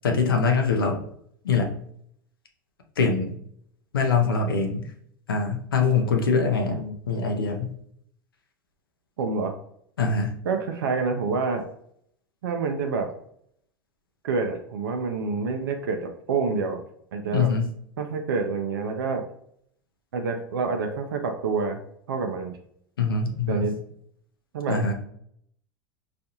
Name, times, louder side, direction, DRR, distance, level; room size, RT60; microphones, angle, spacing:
voice 1, 0.0-1.0 1.4-1.7 3.0-3.3 3.9-4.8 5.3-7.7 10.0-10.4 17.3-17.7 23.0-23.7 24.7-24.9, left 4 dB, 85° left, 4 dB, 0.6 m, -23 dB
voice 2, 6.6-7.0 9.2-9.5 10.4-11.7 12.4-13.1 14.2-16.8 17.1-17.5 18.0-19.3 20.1-21.8 22.1-22.6 23.5-23.8 24.5-24.8, right 4 dB, 75° right, 5 dB, 0.5 m, -27 dB
4.2 x 2.4 x 2.7 m, 0.68 s
hypercardioid pair, 85°, 12 cm